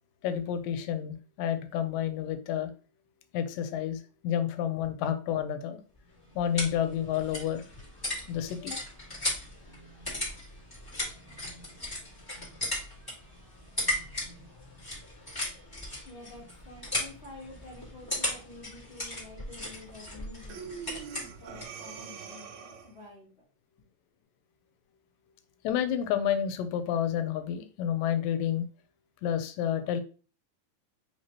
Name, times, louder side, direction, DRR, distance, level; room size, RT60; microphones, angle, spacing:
voice 1, 0.2-2.7 3.3-5.8 6.4-7.6 8.3-8.8 25.6-28.7 29.2-30.0, left 9 dB, 85° left, 9 dB, 2.3 m, -30 dB
sound 1, 5.9-21.8, left 1 dB, 15° left, 0.9 m, -37 dB
voice 2, 16.0-20.8 21.4-23.3, left 2 dB, 50° left, -7 dB, 1.5 m, -49 dB
Breathing, 20.5-23.1, right 7 dB, 75° right, 1.7 m, -43 dB
5.1 x 3.0 x 2.9 m, 0.38 s
omnidirectional pair, 3.9 m